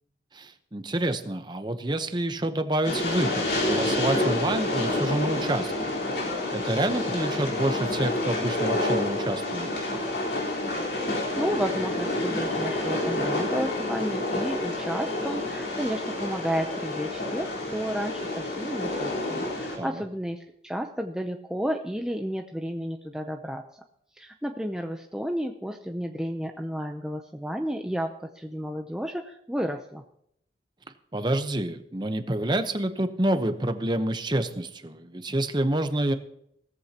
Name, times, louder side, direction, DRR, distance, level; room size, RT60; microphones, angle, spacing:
voice 1, 0.3-6.0 6.5-9.7 19.8-20.0 31.1-36.1, right 1 dB, 25° right, 9 dB, 0.9 m, -28 dB
Train, 2.8-19.8, left 1 dB, 75° left, 4.0 m, -28 dB
voice 2, 11.1-23.6 24.2-30.0, equal, 5° right, 4 dB, 0.6 m, -32 dB
17.0 x 14.0 x 2.9 m, 0.72 s
head